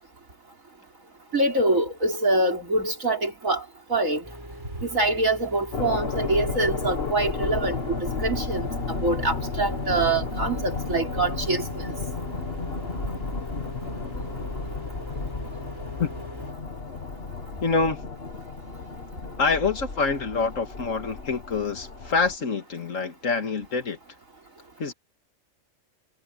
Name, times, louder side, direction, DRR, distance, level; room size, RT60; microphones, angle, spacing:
voice 1, 1.3-3.6 3.9-4.2 4.8-8.7 9.0-11.6, right 2 dB, 85° right, 4.6 m, -25 dB
sound 1, 4.2-16.5, right 1 dB, 15° right, 5.1 m, -42 dB
sound 2, 5.7-22.4, left 4 dB, 50° left, 1.9 m, -33 dB
voice 2, 17.6-18.0 19.4-24.0 24.8-24.9, left 4 dB, 75° left, 2.3 m, -26 dB
omnidirectional pair, 1.3 m